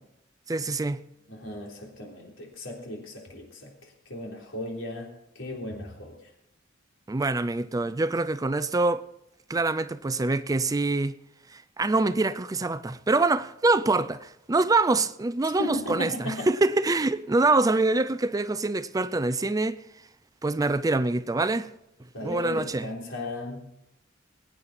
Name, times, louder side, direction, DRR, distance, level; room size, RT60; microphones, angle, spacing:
voice 1, 0.5-1.0 7.1-9.0 9.5-11.1 11.5-19.8 20.4-21.7 22.2-22.9, right 3 dB, 20° right, 0.4 m, -25 dB
voice 2, 1.3-6.2 15.6-16.5 22.1-23.7, left 1 dB, 85° left, 3.6 m, -36 dB
21.0 x 9.2 x 4.2 m
head